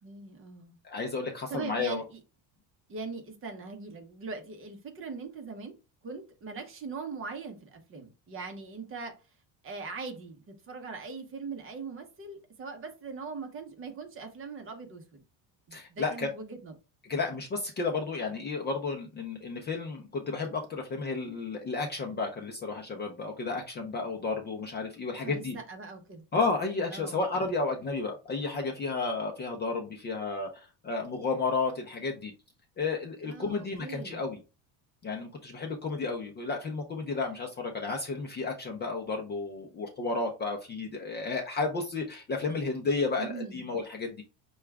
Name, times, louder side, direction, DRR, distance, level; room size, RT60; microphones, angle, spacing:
voice 1, 0.0-0.7 1.5-2.2 2.9-5.7 6.0-9.1 9.6-15.2 15.7-16.7 25.2-26.2 26.9-27.2 33.3-34.2 43.2-43.6, right 4 dB, 30° right, 0.8 m, -41 dB
voice 2, 0.8-2.0 15.7-16.3 17.0-25.6 26.3-32.3 32.8-34.4 35.0-44.2, left 3 dB, 25° left, 0.5 m, -32 dB
5.8 x 2.3 x 3.3 m
cardioid pair, 150°, 45 cm